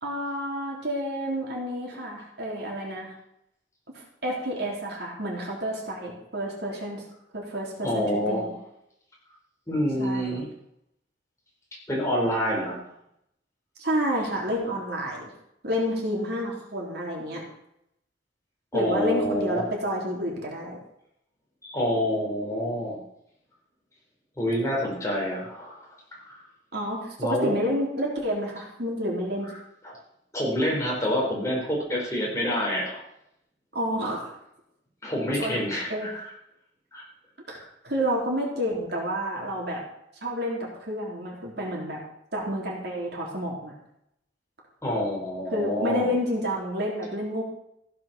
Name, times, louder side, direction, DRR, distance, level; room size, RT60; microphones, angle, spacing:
voice 1, 0.0-3.1 3.9-7.0 7.3-8.5 10.0-10.4 13.8-15.3 15.6-17.4 18.7-20.8 26.7-29.5 33.7-34.3 35.4-36.1 37.5-37.6 37.8-39.8 40.2-42.0 42.3-43.7 45.5-47.4, equal, 60° right, -2 dB, 3.7 m, -29 dB
voice 2, 7.8-8.5 9.7-10.5 11.9-12.8 18.7-19.7 21.6-23.0 24.4-25.8 26.1-26.4 27.2-27.5 29.8-30.0 30.3-32.9 35.0-36.3 36.9-37.0 37.5-37.7 44.8-46.1, equal, 15° left, -3 dB, 4.4 m, -27 dB
15.5 x 7.7 x 7.0 m, 0.78 s
head